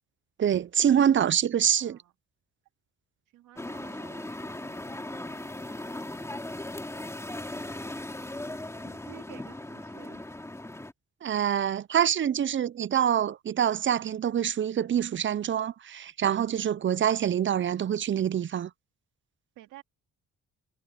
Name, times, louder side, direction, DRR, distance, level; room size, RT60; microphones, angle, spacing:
voice 1, 0.4-2.0 11.2-18.7, right 9 dB, 40° right, 0.6 m, -25 dB
voice 2, 1.8-2.1 3.3-5.5 8.8-10.3 19.6-19.8, right 14 dB, 90° right, 2.6 m, -53 dB
sound 1, 3.6-10.9, left 1 dB, 10° left, 2.8 m, -38 dB
cardioid pair, 90°, 30 cm